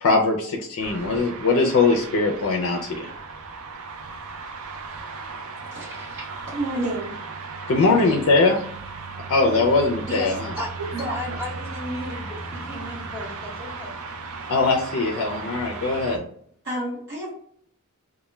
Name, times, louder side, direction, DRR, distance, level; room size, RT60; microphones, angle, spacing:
voice 1, 0.0-3.1 7.7-8.6 9.3-10.5 14.5-16.3, left 3 dB, 60° left, 1 dB, 0.4 m, -21 dB
sound 1, 0.8-16.2, right 4 dB, 80° right, 0.4 m, -36 dB
voice 2, 5.7-7.1 9.6-9.7 10.2-10.4 11.1-11.4 16.6-17.3, right 1 dB, 50° right, -6 dB, 0.7 m, -31 dB
voice 3, 10.6-13.9, equal, 10° right, -3 dB, 0.7 m, -34 dB
2.2 x 2.1 x 3.1 m, 0.64 s
head